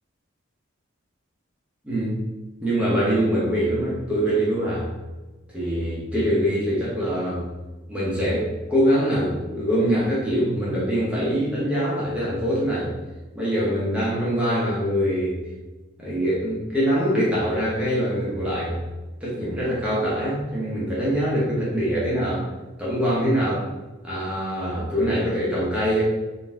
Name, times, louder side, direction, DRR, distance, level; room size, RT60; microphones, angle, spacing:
voice 1, 1.8-2.2 2.6-4.9 5.5-7.5 7.9-12.9 13.3-15.4 16.0-18.8 19.2-22.5 22.8-23.7 24.0-26.0, equal, 5° right, -8 dB, 0.8 m, -23 dB
3.8 x 2.6 x 3.5 m, 1.2 s
head